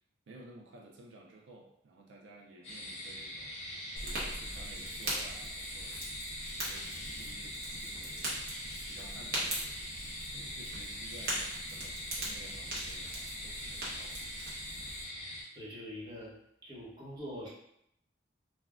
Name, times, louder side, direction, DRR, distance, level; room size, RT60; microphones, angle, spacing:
voice 1, 0.3-6.1 6.4-10.0 10.3-14.3, right 2 dB, 85° right, -1 dB, 0.4 m, -54 dB
sound 1, 2.6-15.4, left 1 dB, 35° left, 1.0 m, -43 dB
Fire, 4.0-15.0, right 1 dB, 55° right, 0.8 m, -40 dB
voice 2, 15.5-16.3 16.6-17.5, equal, 25° right, -7 dB, 0.9 m, -43 dB
3.4 x 2.1 x 2.4 m, 0.76 s
head